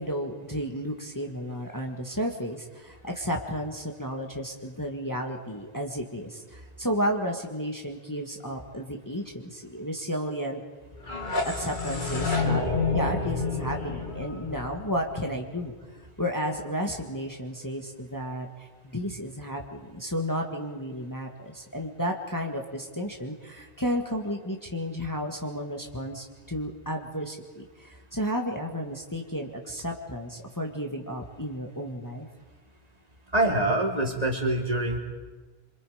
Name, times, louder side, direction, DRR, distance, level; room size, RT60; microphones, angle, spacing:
voice 1, 0.0-10.6 11.4-12.7 12.9-15.7 16.2-32.3, equal, 20° left, 1 dB, 1.7 m, -32 dB
sound 1, 10.9-15.8, left 3 dB, 50° left, 2.9 m, -29 dB
voice 2, 33.3-35.0, right 1 dB, 40° right, 0 dB, 3.1 m, -25 dB
27.5 x 25.5 x 5.0 m, 1.3 s
omnidirectional pair, 1.0 m